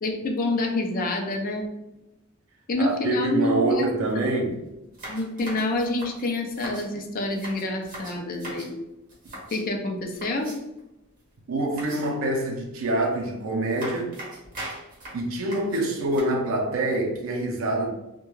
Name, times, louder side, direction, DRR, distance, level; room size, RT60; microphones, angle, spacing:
voice 1, 0.0-1.7 2.7-3.9 5.1-8.7 9.5-10.5, left 2 dB, 45° left, 3 dB, 0.4 m, -27 dB
voice 2, 2.8-4.6 11.5-14.1 15.1-17.9, right 2 dB, 70° right, 1 dB, 0.4 m, -26 dB
sound 1, 4.0-4.1 4.4-4.5 4.9-6.9 7.3-8.7 9.1-9.7 10.1-10.8 11.8-12.3 13.2-13.3 13.7-16.2, right 1 dB, 40° right, 0.9 m, -40 dB
2.2 x 2.1 x 3.0 m, 0.92 s
head